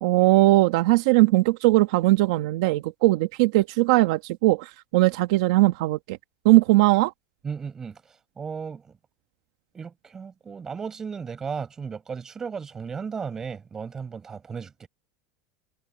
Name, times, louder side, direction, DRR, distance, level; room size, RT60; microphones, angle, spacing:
voice 1, 0.0-6.2 6.4-7.1, right 19 dB, 70° right, 1.3 m, -20 dB
voice 2, 7.4-8.0 8.4-8.9 9.7-14.9, right 6 dB, 20° right, 5.4 m, -35 dB
supercardioid pair, 155°, 3 cm